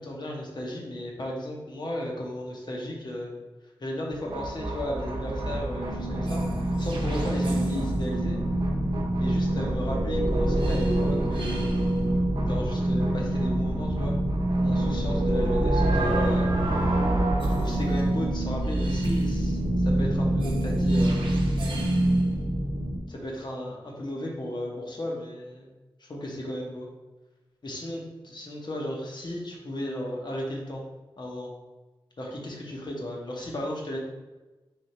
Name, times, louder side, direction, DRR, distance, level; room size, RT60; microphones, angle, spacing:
voice 1, 0.0-3.3 3.8-8.4 9.2-11.9 12.4-14.1 14.6-16.5 17.6-21.4 23.1-25.7 26.0-26.9 27.6-30.8 31.2-31.5 32.2-34.0, left 1 dB, 50° left, -1 dB, 1.0 m, -35 dB
sound 1, 4.1-23.0, right 1 dB, 60° right, 0.8 m, -25 dB
3.5 x 2.8 x 4.2 m, 1.2 s
wide cardioid pair, 65°, 9 cm